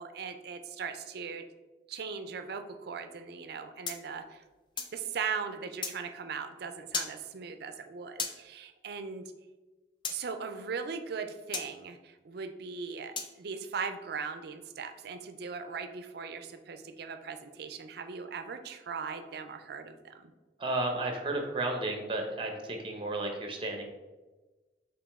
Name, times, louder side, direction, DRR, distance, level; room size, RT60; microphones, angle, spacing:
voice 1, 0.0-1.4 1.9-4.4 4.9-9.2 10.1-20.3, right 5 dB, 60° right, 8 dB, 0.4 m, -39 dB
sound 1, 3.9-5.0 5.8-6.0 6.9-7.2 8.2-8.4 10.0-10.2 11.5-11.7 13.2-13.4, left 5 dB, 25° left, 0.4 m, -35 dB
voice 2, 20.6-23.8, right 2 dB, 30° right, 3 dB, 0.7 m, -33 dB
5.0 x 2.9 x 3.5 m, 1.2 s
head